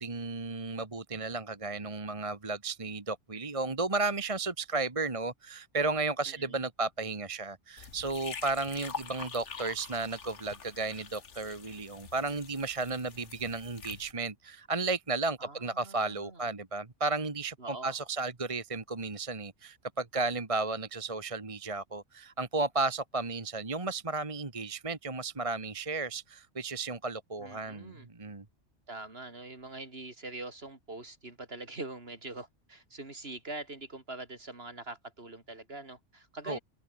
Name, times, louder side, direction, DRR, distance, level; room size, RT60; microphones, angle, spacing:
voice 1, 0.0-28.4 36.5-36.6, right 3 dB, 25° right, 1.5 m, -34 dB
voice 2, 6.3-6.6 15.4-16.5 17.6-18.0 27.4-28.1 28.9-36.6, right 2 dB, 55° right, 3.8 m, -44 dB
sound 1, 7.8-14.1, left 6 dB, 70° left, 1.8 m, -45 dB
omnidirectional pair, 1.3 m